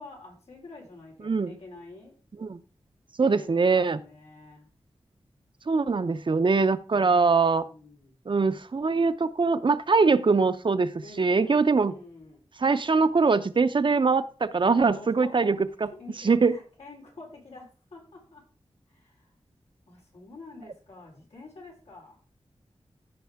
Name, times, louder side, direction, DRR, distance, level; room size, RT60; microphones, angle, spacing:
voice 1, 0.0-2.2 3.2-4.7 6.9-8.1 11.0-12.4 14.9-15.6 15.9-18.4 18.9-19.3 19.9-22.2, left 2 dB, 90° left, -2 dB, 3.9 m, -47 dB
voice 2, 1.2-1.6 2.4-2.6 3.2-4.0 5.7-7.6 8.3-10.9 11.2-11.9 12.6-15.6 16.2-16.5, right 4 dB, 50° right, 12 dB, 0.6 m, -22 dB
14.0 x 5.4 x 3.5 m, 0.38 s
wide cardioid pair, 75°, 11 cm